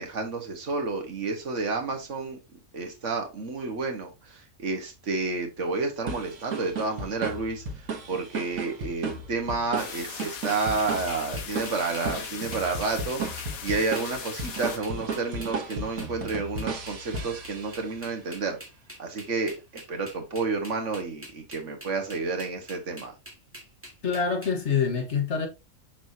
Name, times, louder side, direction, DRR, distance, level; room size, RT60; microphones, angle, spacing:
voice 1, 0.0-2.4 2.7-7.6 8.1-18.6 19.0-23.1, right 3 dB, 60° right, 1.5 m, -30 dB
sound 1, 6.1-18.0, right 3 dB, 90° right, 1.7 m, -35 dB
sound 2, 9.8-14.8, left 7 dB, 80° left, 1.3 m, -39 dB
sound 3, 10.2-24.5, equal, 10° right, 2.0 m, -45 dB
voice 2, 24.0-25.5, left 6 dB, 55° left, 1.6 m, -26 dB
6.1 x 6.1 x 2.7 m
omnidirectional pair, 1.4 m